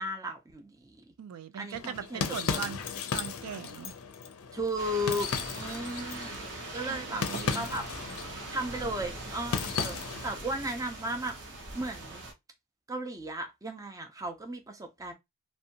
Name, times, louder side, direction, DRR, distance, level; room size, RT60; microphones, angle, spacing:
voice 1, 0.0-1.1 1.6-2.7 4.5-7.8 8.5-11.4 11.7-12.2 12.9-15.1, right 1 dB, 15° right, 0.4 m, -35 dB
voice 2, 1.2-2.8 3.1-3.9 6.9-7.6, right 8 dB, 85° right, 0.3 m, -39 dB
sound 1, 1.7-10.4, left 6 dB, 65° left, 0.4 m, -36 dB
sound 2, 4.8-12.3, right 2 dB, 55° right, 0.7 m, -41 dB
2.6 x 2.1 x 2.7 m
head